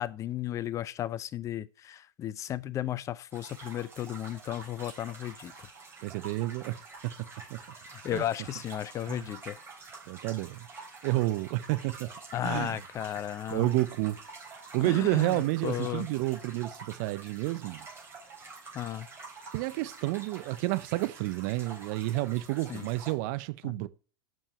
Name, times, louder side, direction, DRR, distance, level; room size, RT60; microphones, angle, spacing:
voice 1, 0.0-5.5 7.9-9.6 12.3-13.7 14.8-16.1 18.7-19.1 22.7-22.9 23.6-23.7, left 12 dB, 25° left, 0.5 m, -34 dB
sound 1, 3.3-23.1, right 4 dB, 20° right, 3.9 m, -47 dB
voice 2, 6.0-7.1 7.5-7.6 8.1-8.2 9.1-9.3 10.1-10.7 11.0-12.1 12.4-12.8 13.5-14.2 14.7-17.8 19.5-23.9, right 19 dB, 50° right, 0.6 m, -30 dB
6.6 x 6.1 x 5.6 m
hypercardioid pair, 105°, 11 cm